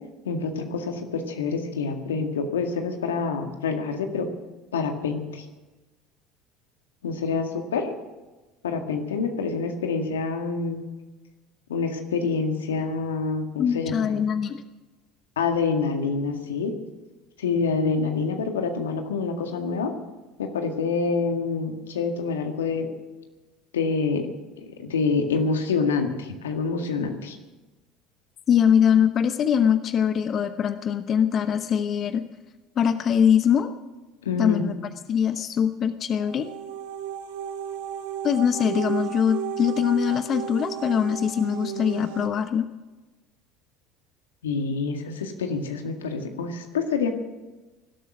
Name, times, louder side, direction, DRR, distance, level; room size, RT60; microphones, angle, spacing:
voice 1, 0.2-4.3 4.7-5.5 7.0-7.9 8.6-10.8 11.7-14.2 15.4-16.7 17.4-19.9 20.4-22.9 23.7-24.2 24.6-27.4 34.2-34.7 44.4-47.1, left 4 dB, 85° left, 4 dB, 1.9 m, -27 dB
voice 2, 13.6-14.6 28.5-32.3 32.8-33.7 34.4-34.7 35.1-36.5 38.2-42.7, left 8 dB, 45° left, 10 dB, 0.9 m, -22 dB
sound 1, 36.2-42.3, right 9 dB, 75° right, 1.3 m, -33 dB
19.0 x 12.5 x 6.1 m, 1.2 s
hypercardioid pair, 75°, 0 cm